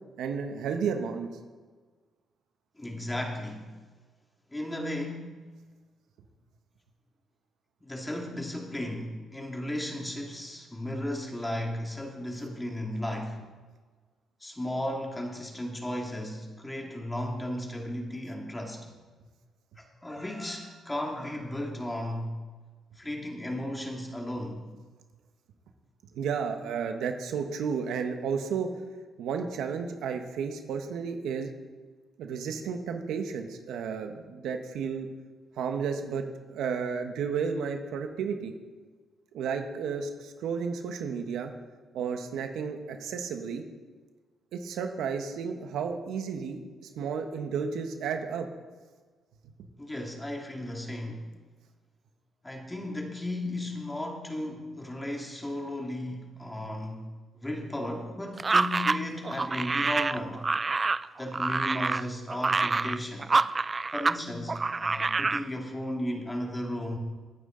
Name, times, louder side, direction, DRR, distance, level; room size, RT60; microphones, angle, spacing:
voice 1, 0.2-1.3 26.1-28.7 29.2-31.5 32.2-35.1 35.6-38.5 39.3-41.5 41.9-43.6 44.5-48.5, right 6 dB, 85° right, 6 dB, 1.2 m, -32 dB
voice 2, 2.8-3.8 4.5-5.5 7.8-13.4 14.4-18.9 19.8-22.7 23.0-24.7 49.8-51.3 52.4-57.1 57.3-60.5 61.2-63.3 63.9-67.0, left 1 dB, 15° left, 1 dB, 2.3 m, -35 dB
sound 1, 58.4-64.2 64.5-65.4, right 3 dB, 30° right, 0.3 m, -27 dB
17.0 x 9.7 x 3.9 m, 1.4 s
cardioid pair, 85°, 0 cm